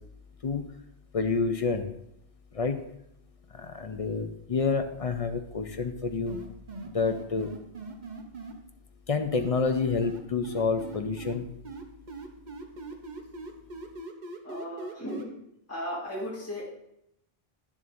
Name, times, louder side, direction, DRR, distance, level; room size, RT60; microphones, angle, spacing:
voice 1, 1.1-1.9 2.5-2.8 3.5-6.4 6.8-7.5 9.1-11.5, left 4 dB, 45° left, 7 dB, 0.5 m, -28 dB
sound 1, 6.3-8.5 9.3-11.4 11.6-15.2, right 3 dB, 50° right, 0.9 m, -40 dB
voice 2, 14.4-15.3 15.7-16.6, equal, 15° left, -6 dB, 1.9 m, -35 dB
10.5 x 7.2 x 2.6 m, 0.78 s
omnidirectional pair, 1.1 m